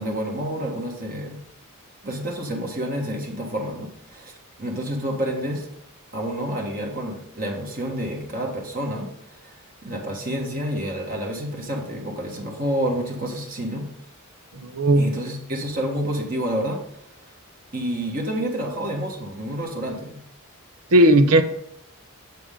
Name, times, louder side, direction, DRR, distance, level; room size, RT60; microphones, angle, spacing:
voice 1, 0.0-1.4 2.0-4.3 4.6-5.7 6.1-9.1 9.4-9.5 9.8-13.9 15.0-16.8 17.7-20.2, equal, 40° right, 0 dB, 1.4 m, -29 dB
voice 2, 14.6-15.1 20.9-21.4, right 1 dB, 85° right, 9 dB, 0.9 m, -15 dB
7.6 x 7.4 x 3.7 m, 0.70 s
head